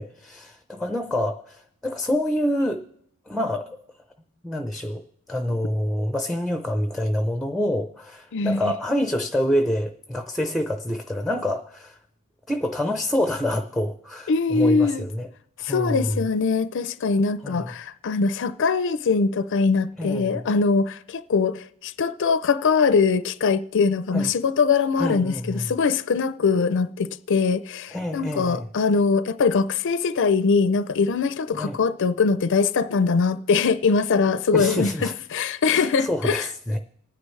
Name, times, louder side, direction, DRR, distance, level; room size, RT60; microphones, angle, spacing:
voice 1, 0.0-2.8 3.3-3.8 4.4-5.0 5.3-12.0 12.5-15.3 15.6-16.2 17.4-17.7 20.0-20.4 24.1-24.3 25.0-25.8 27.9-28.7 31.5-31.8 34.5-35.1 35.7-36.8, left 1 dB, ahead, 0.6 m, -27 dB
voice 2, 8.3-8.7 14.3-15.0 15.6-36.5, left 4 dB, 60° left, 0.5 m, -22 dB
27.0 x 9.8 x 3.2 m
head